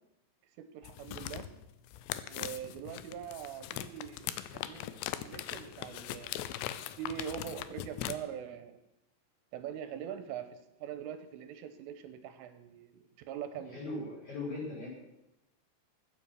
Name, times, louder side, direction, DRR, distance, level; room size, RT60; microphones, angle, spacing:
voice 1, 0.6-1.5 2.2-4.9 5.2-6.4 7.0-8.8 9.5-13.8, right 9 dB, 85° right, 9 dB, 3.4 m, -43 dB
sound 1, 0.8-8.2, left 13 dB, 85° left, 2.5 m, -40 dB
voice 2, 13.7-14.9, left 2 dB, 35° left, -4 dB, 6.8 m, -38 dB
15.0 x 9.5 x 6.4 m, 0.89 s
omnidirectional pair, 5.7 m